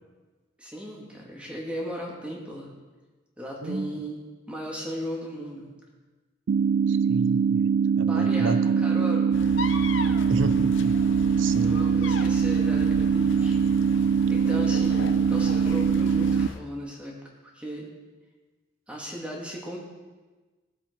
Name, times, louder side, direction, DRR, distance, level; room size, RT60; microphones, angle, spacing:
voice 1, 0.6-2.7 3.4-4.2 4.5-5.7 8.1-9.4 10.0-10.2 11.6-13.6 14.3-17.2 17.5-17.9 18.9-19.8, equal, 5° right, -3 dB, 2.4 m, -36 dB
voice 2, 3.6-4.0 6.9-8.9 10.3-10.9 11.4-11.8, right 2 dB, 85° right, 12 dB, 0.8 m, -31 dB
sound 1, 6.5-16.5, right 6 dB, 55° right, 0.3 m, -23 dB
sound 2, 9.3-16.6, left 3 dB, 80° left, 0.8 m, -36 dB
19.5 x 7.7 x 4.7 m, 1.3 s
head